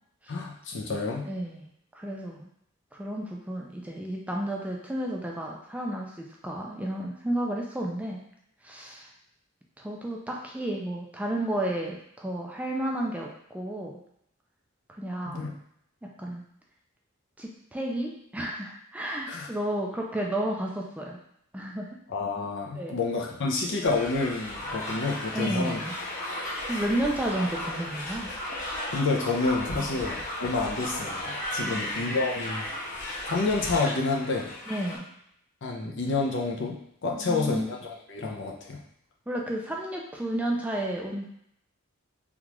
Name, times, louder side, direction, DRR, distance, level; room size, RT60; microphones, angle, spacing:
voice 1, 0.3-1.3 15.3-15.5 19.3-19.5 22.1-25.8 28.9-32.7 33.3-34.5 35.6-38.8, left 3 dB, 60° left, 0 dB, 0.6 m, -29 dB
voice 2, 1.2-2.5 2.9-8.2 8.6-9.1 9.8-14.0 15.0-15.5 16.0-16.4 17.4-21.2 21.5-22.0 22.7-23.0 25.3-25.9 26.7-28.3 29.9-30.0 31.6-31.9 34.7-35.1 37.2-37.7 39.3-41.2, right 1 dB, 5° right, -1 dB, 0.4 m, -32 dB
sound 1, 23.8-35.0, left 1 dB, 40° left, 1.3 m, -35 dB
3.6 x 2.4 x 3.0 m, 0.74 s
head